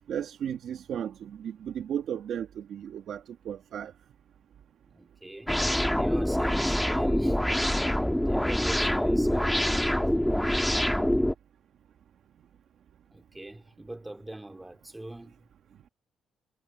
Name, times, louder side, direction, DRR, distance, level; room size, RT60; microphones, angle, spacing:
voice 1, 0.1-3.9, right 9 dB, 70° right, 1.6 m, -35 dB
voice 2, 4.9-5.5 5.9-7.4 8.2-9.6 13.1-15.5, right 1 dB, 10° right, 2.2 m, -42 dB
sound 1, 5.5-11.3, equal, 5° left, 1.4 m, -25 dB
cardioid pair, 90°, 0 cm